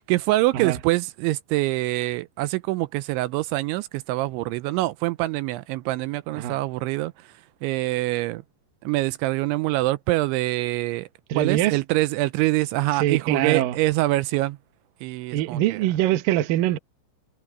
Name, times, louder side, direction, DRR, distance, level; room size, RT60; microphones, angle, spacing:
voice 1, 0.0-7.3 7.6-8.4 8.8-11.1 11.4-14.6 15.0-15.8, right 19 dB, 85° right, 3.0 m, -25 dB
voice 2, 11.3-11.8 12.9-13.8 15.3-16.8, right 13 dB, 70° right, 2.3 m, -23 dB
omnidirectional pair, 5.4 m